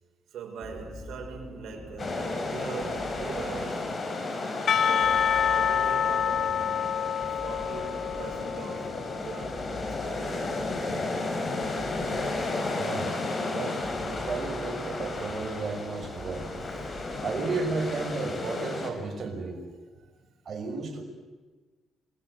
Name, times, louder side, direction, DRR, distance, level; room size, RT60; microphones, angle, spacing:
voice 1, 0.3-3.9 4.8-7.0 7.4-10.7 20.0-20.1, right 6 dB, 70° right, 5.9 m, -41 dB
sound 1, 0.6-18.2, left 1 dB, 20° left, 4.7 m, -46 dB
sound 2, 2.0-18.9, left 2 dB, 40° left, 4.7 m, -33 dB
Percussion / Church bell, 4.7-9.7, left 8 dB, 60° left, 0.8 m, -27 dB
voice 2, 12.7-13.2 13.5-16.7 17.2-19.6 20.4-21.0, right 3 dB, 50° right, 6.4 m, -33 dB
27.5 x 22.0 x 8.0 m
cardioid pair, 90°, 0 cm